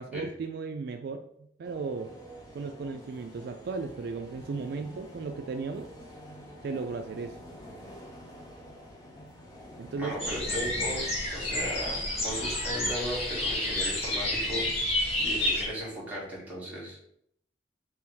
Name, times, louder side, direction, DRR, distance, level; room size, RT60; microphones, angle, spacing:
voice 1, 0.0-2.1 2.5-5.9 6.6-7.4 9.8-10.1, right 4 dB, 65° right, 6 dB, 0.3 m, -36 dB
sound 1, 1.6-14.6, equal, 20° left, 0.9 m, -49 dB
voice 2, 10.0-17.0, equal, 10° right, -7 dB, 1.8 m, -37 dB
sound 2, 10.2-15.7, left 1 dB, 40° left, 1.2 m, -30 dB
3.4 x 3.0 x 4.7 m, 0.70 s
head